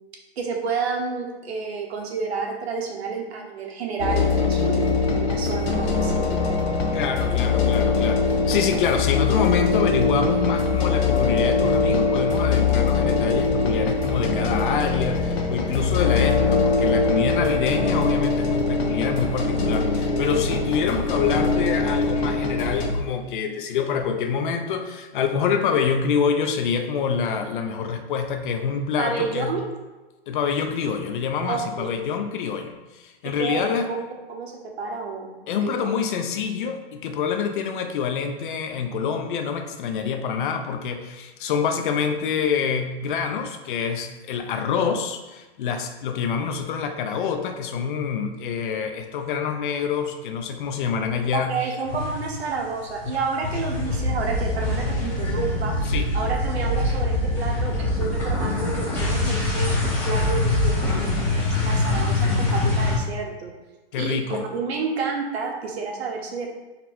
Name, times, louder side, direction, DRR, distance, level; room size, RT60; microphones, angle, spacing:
voice 1, 0.4-6.6 7.3-7.4 7.6-7.8 29.0-29.6 31.5-31.9 33.2-34.0 34.3-34.5 34.8-35.4 35.6-35.9 51.3-55.8 56.1-63.5 64.0-66.5, right 5 dB, 75° right, 1 dB, 1.0 m, -30 dB
sound 1, 4.0-22.9, left 4 dB, 75° left, 0.9 m, -22 dB
voice 2, 6.9-29.5 30.3-33.9 35.5-51.5 55.9-56.1 63.9-64.4, left 6 dB, 50° left, 6 dB, 0.5 m, -26 dB
sound 2, 51.9-52.6 52.9-63.0, left 2 dB, 5° left, 0.7 m, -24 dB
4.0 x 2.2 x 4.2 m, 1.1 s
hypercardioid pair, 160°, 32 cm